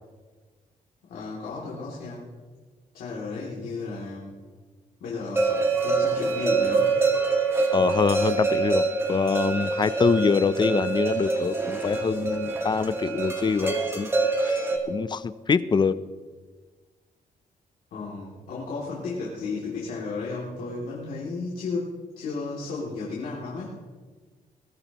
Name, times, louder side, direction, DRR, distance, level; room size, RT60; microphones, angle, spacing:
voice 1, 1.0-2.3 2.9-4.4 5.0-6.9 17.9-23.7, left 3 dB, 85° left, -5 dB, 2.9 m, -34 dB
sound 1, 5.4-14.8, right 4 dB, 15° right, 2.2 m, -25 dB
voice 2, 7.7-14.1 14.4-14.6 14.9-16.0, left 5 dB, 30° left, 15 dB, 0.6 m, -24 dB
22.0 x 15.0 x 3.1 m, 1.4 s
cardioid pair, 115°, 15 cm